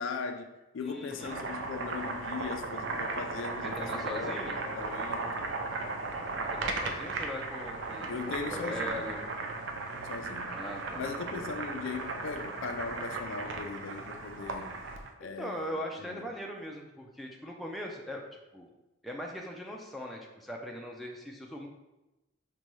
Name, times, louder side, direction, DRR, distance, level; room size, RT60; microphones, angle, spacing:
voice 1, 0.0-5.5 8.1-9.0 10.1-10.6 11.0-14.7 15.2-15.8 16.1-16.2, left 5 dB, 75° left, 0.4 m, -39 dB
voice 2, 0.8-1.4 3.6-4.6 6.5-9.3 10.5-11.1 15.2-18.7 19.0-21.7, equal, ahead, 0.4 m, -40 dB
Boiling, 1.0-15.1, right 3 dB, 65° right, 0.4 m, -36 dB
5.2 x 2.2 x 3.1 m
head